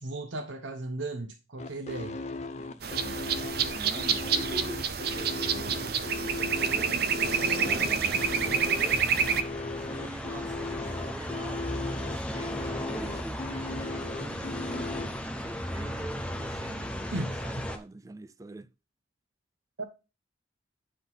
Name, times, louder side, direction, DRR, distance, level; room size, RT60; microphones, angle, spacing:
voice 1, 0.0-2.2 17.1-17.3 19.8-19.9, right 2 dB, 85° right, 0.9 m, -35 dB
sound 1, 1.6-15.1, left 3 dB, 35° left, 0.8 m, -37 dB
voice 2, 2.6-3.2 3.7-7.0 7.6-9.0 9.8-11.6 12.0-15.2 15.4-17.1 17.4-18.7, right 1 dB, 20° right, 0.3 m, -44 dB
sound 2, 2.8-9.4, right 6 dB, 55° right, 0.6 m, -28 dB
sound 3, 7.2-17.8, equal, 5° left, 0.8 m, -36 dB
9.7 x 3.8 x 4.0 m
head